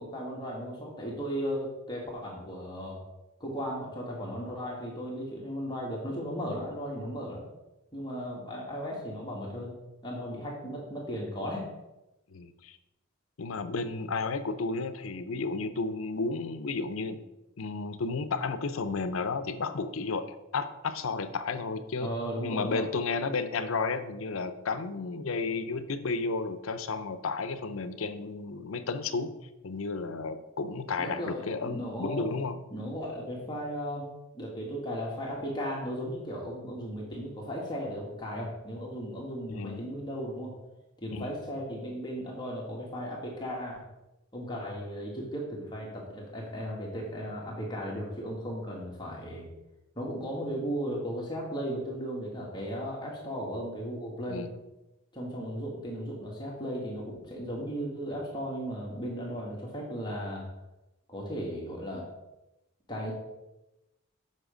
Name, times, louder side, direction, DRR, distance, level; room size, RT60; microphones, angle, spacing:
voice 1, 0.0-3.0 3.4-7.4 7.9-9.7 10.0-11.6 22.0-22.9 31.0-32.3 32.7-34.1 34.3-40.5 41.0-43.8 44.3-49.5 49.9-54.5 55.1-60.5 61.1-62.0 62.9-63.1, equal, 20° left, -3 dB, 1.6 m, -36 dB
voice 2, 12.3-12.8 13.4-17.2 17.6-22.1 22.4-29.3 29.6-32.6 39.5-39.8 41.1-41.3 54.3-54.5, left 4 dB, 70° left, 11 dB, 0.6 m, -32 dB
7.5 x 5.9 x 5.0 m, 0.98 s
head